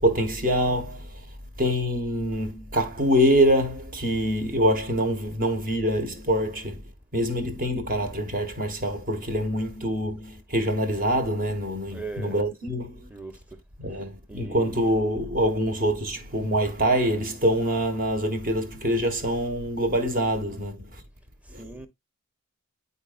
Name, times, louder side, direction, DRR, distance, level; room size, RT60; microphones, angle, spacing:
voice 1, 0.0-1.2 1.6-6.8 7.1-13.1 13.8-21.0 21.5-21.7, equal, 40° right, 1.5 m, -25 dB
voice 2, 11.9-12.4 13.1-13.4 14.3-14.8 21.6-21.9, right 3 dB, 5° right, 0.8 m, -39 dB
9.8 x 4.1 x 2.5 m
head